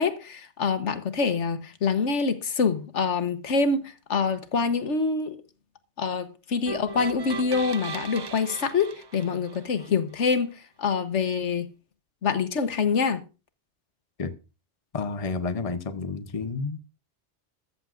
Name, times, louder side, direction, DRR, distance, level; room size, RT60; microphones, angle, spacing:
voice 1, 0.0-5.4 6.0-11.7 12.2-13.2, left 5 dB, 85° left, 1.4 m, -26 dB
sound 1, 6.7-9.9, right 5 dB, 35° right, 0.4 m, -37 dB
voice 2, 14.9-16.8, left 4 dB, 30° left, 1.0 m, -30 dB
14.0 x 14.0 x 2.5 m
omnidirectional pair, 1.2 m